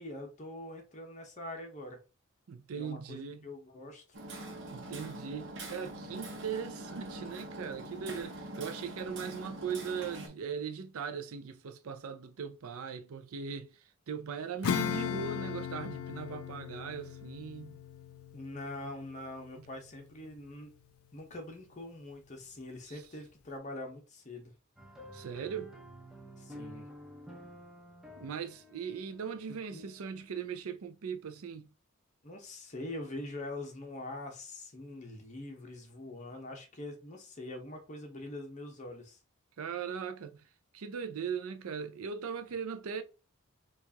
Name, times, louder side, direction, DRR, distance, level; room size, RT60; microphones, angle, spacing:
voice 1, 0.0-2.0 2.8-4.0 18.3-20.7 21.1-24.5 26.4-26.9 29.7-29.8 32.2-39.2, left 1 dB, 35° left, 0.8 m, -43 dB
voice 2, 2.5-3.5 4.7-17.8 19.6-19.7 22.9-23.0 25.1-25.8 28.2-31.7 39.6-40.4 40.7-43.0, right 6 dB, 75° right, 0.5 m, -39 dB
Hammer, 4.1-10.3, right 1 dB, 55° right, 0.9 m, -44 dB
Acoustic guitar / Strum, 14.6-20.6, left 8 dB, 75° left, 0.4 m, -38 dB
sound 1, 24.8-30.3, equal, ahead, 0.6 m, -51 dB
4.5 x 2.4 x 2.8 m
head